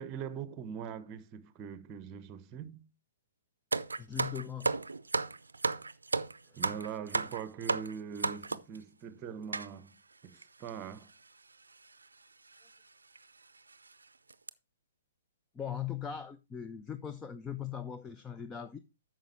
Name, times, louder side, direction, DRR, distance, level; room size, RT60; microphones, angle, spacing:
voice 1, 0.0-2.9 6.6-10.0 10.2-11.1, right 7 dB, 25° right, 0.9 m, -42 dB
sound 1, 3.7-8.8 9.5-9.7 10.4-10.5 10.7-10.9 11.8-12.0 12.5-12.6 13.2-13.3 13.7-13.9 14.3-14.5, right 3 dB, 75° right, 0.5 m, -33 dB
voice 2, 4.0-4.7 15.5-18.8, left 9 dB, 15° left, 0.5 m, -39 dB
9.1 x 6.3 x 4.4 m
figure-of-eight pair, 120°, 0 cm